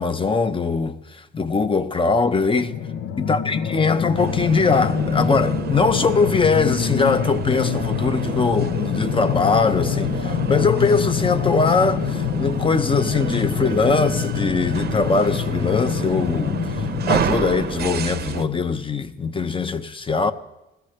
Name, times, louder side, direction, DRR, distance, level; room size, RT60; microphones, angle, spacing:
voice 1, 0.0-2.8 3.2-20.3, left 4 dB, 25° left, 0.9 m, -21 dB
sound 1, 2.5-17.2, left 8 dB, 90° left, 0.8 m, -25 dB
sound 2, 4.1-18.4, right 8 dB, 55° right, 0.7 m, -30 dB
20.0 x 15.0 x 3.3 m
cardioid pair, 90°, 20 cm